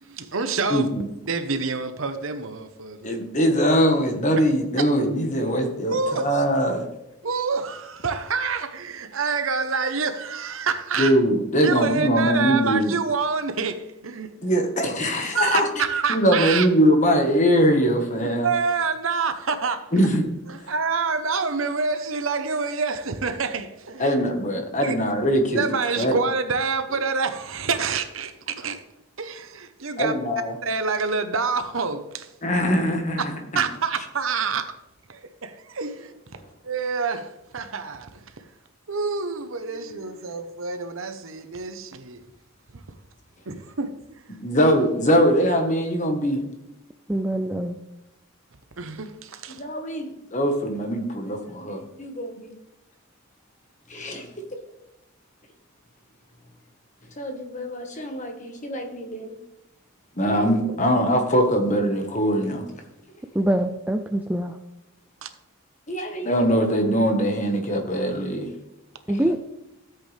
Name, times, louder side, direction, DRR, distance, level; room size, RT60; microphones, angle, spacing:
voice 1, 0.0-0.9 1.3-3.1 5.9-6.3 7.2-11.1 11.6-14.5 15.3-16.7 18.4-19.9 20.5-24.1 24.8-25.0 25.6-28.8 29.2-30.1 30.6-32.3 33.5-34.7 35.1-36.1 36.6-38.2 38.9-42.2 43.5-43.9 48.8-49.6 65.2-65.3, right 5 dB, 75° right, 1.0 m, -27 dB
voice 2, 0.7-1.0 3.0-6.8 11.0-13.0 14.4-15.8 16.1-18.5 19.9-20.2 24.0-25.6 26.0-26.2 30.0-30.5 32.4-33.6 44.4-46.4 49.5-52.5 53.9-54.3 57.2-59.4 60.2-62.7 65.9-68.5, equal, 35° left, 1.4 m, -22 dB
voice 3, 47.1-47.8 63.3-64.6 69.1-69.4, right 1 dB, 10° right, 0.4 m, -24 dB
14.0 x 8.0 x 3.4 m
head